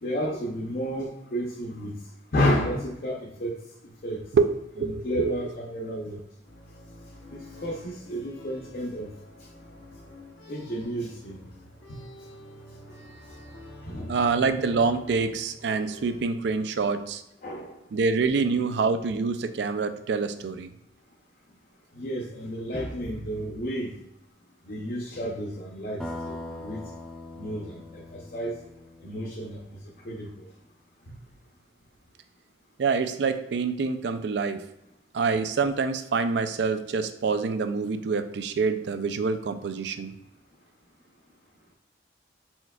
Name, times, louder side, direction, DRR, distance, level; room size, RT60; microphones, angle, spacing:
voice 1, 0.0-1.9 2.3-3.6 4.0-4.2 4.8-6.2 7.6-9.1 10.5-11.4 13.9-14.1 17.4-17.7 22.0-23.9 24.7-26.0 26.3-26.4 26.6-26.8 27.4-28.6 29.0-29.6 30.1-30.3, equal, 50° left, -1 dB, 0.6 m, -31 dB
voice 2, 4.3-5.3 6.1-6.2 14.1-17.2 17.9-20.7 32.8-34.6 35.1-40.1, right 4 dB, 65° right, 10 dB, 0.4 m, -26 dB
sound 1, 6.4-16.2, equal, 80° left, 1.1 m, -47 dB
sound 2, 26.0-29.8, left 2 dB, 5° left, 0.4 m, -41 dB
4.4 x 4.3 x 2.3 m, 0.85 s
head